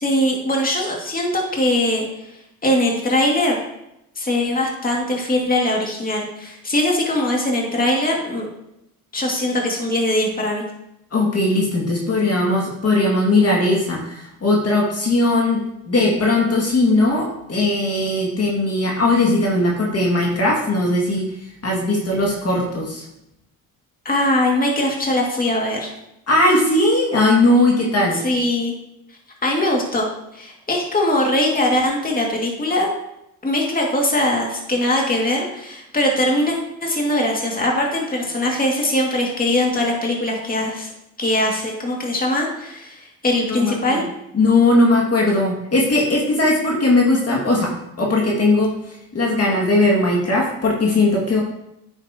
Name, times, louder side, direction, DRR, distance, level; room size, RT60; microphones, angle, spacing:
voice 1, 0.0-2.1 2.6-3.6 4.2-8.5 9.1-10.6 24.0-25.9 28.2-28.7 29.4-30.1 30.3-32.9 33.4-36.6 36.8-40.9 41.2-44.0, left 1 dB, 25° left, -1 dB, 2.3 m, -21 dB
voice 2, 11.1-15.6 15.9-21.3 21.6-23.0 26.3-28.2 43.5-44.0 44.3-48.7 49.1-51.4, left 2 dB, 40° left, -2 dB, 2.3 m, -18 dB
9.3 x 7.9 x 3.0 m, 0.83 s
cardioid pair, 85°, 36 cm